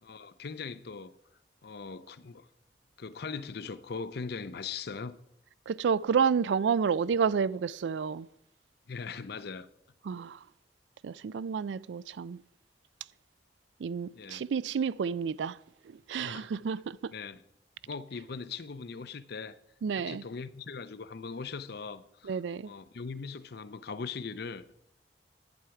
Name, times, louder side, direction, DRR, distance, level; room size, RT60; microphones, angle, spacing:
voice 1, 0.0-1.1 1.6-2.5 3.0-5.2 8.9-9.7 14.1-14.4 16.2-16.5 17.1-17.4 17.9-19.6 20.0-24.6, left 5 dB, 65° left, 0.6 m, -40 dB
voice 2, 5.7-8.3 10.1-10.4 11.0-12.4 13.8-15.6 15.9-17.1 19.8-20.2 22.2-22.7, right 6 dB, 80° right, 0.4 m, -30 dB
10.5 x 9.9 x 4.7 m
head